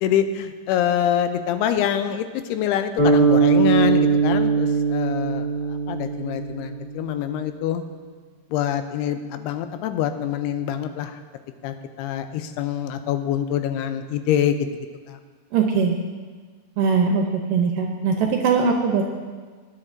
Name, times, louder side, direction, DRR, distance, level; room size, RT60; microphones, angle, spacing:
voice 1, 0.0-7.8 8.5-11.2 11.6-14.7 15.1-15.2, left 10 dB, 90° left, 8 dB, 2.6 m, -25 dB
sound 1, 3.0-7.2, right 4 dB, 20° left, 1.8 m, -20 dB
voice 2, 15.5-16.0 16.8-19.0, right 5 dB, 75° right, 2 dB, 2.0 m, -21 dB
18.5 x 10.0 x 2.6 m, 1.5 s
omnidirectional pair, 4.6 m